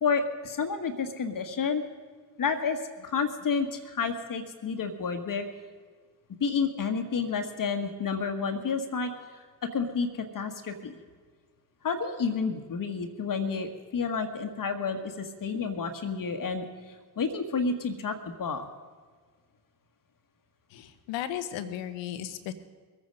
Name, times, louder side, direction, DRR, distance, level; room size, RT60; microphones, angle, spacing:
voice 1, 0.0-1.8 2.4-5.5 6.4-9.1 9.6-11.0 11.8-18.7, left 5 dB, 45° left, 6 dB, 1.5 m, -30 dB
voice 2, 20.7-22.5, left 11 dB, 70° left, 11 dB, 1.1 m, -35 dB
21.5 x 9.2 x 5.3 m, 1.5 s
hypercardioid pair, 45°, 46 cm